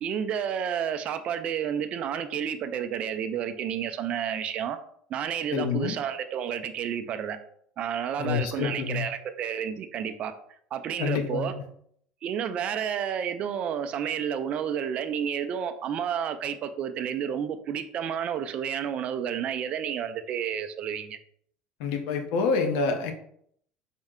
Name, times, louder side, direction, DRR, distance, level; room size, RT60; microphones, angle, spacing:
voice 1, 0.0-4.8 5.1-7.4 7.8-10.3 10.7-11.5 12.2-21.2, right 8 dB, 35° right, 9 dB, 0.3 m, -30 dB
voice 2, 5.5-6.0 8.2-9.0 11.0-11.6 21.8-23.1, left 5 dB, 75° left, 5 dB, 0.7 m, -27 dB
4.3 x 2.1 x 3.6 m, 0.67 s
cardioid pair, 160°, 3 cm